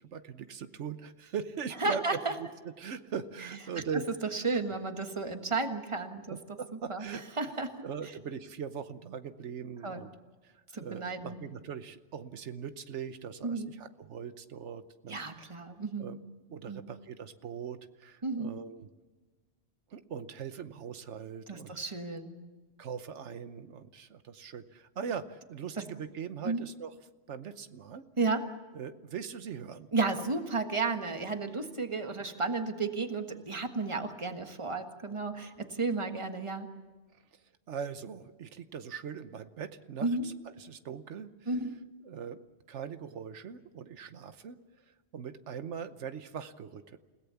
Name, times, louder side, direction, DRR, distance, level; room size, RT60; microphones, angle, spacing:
voice 1, 0.0-2.0 2.4-4.1 6.3-7.5 7.8-10.1 10.4-15.5 16.0-16.2 16.5-18.9 19.9-21.7 22.8-26.9 27.3-28.1 28.7-29.9 37.3-37.4 37.7-41.5 42.0-42.4 42.7-44.6 45.1-47.0, right 7 dB, 90° right, 10 dB, 1.3 m, -41 dB
voice 2, 1.8-2.3 4.3-6.4 6.9-7.0 7.4-7.8 9.8-10.0 10.7-11.3 13.4-13.7 15.1-16.2 16.7-16.8 18.2-18.5 21.5-22.4 25.8-25.9 26.4-26.6 28.2-28.5 29.9-36.7 40.0-40.3 41.5-41.7, right 3 dB, 25° right, 6 dB, 1.6 m, -33 dB
29.5 x 17.5 x 7.1 m, 1.3 s
omnidirectional pair, 1.2 m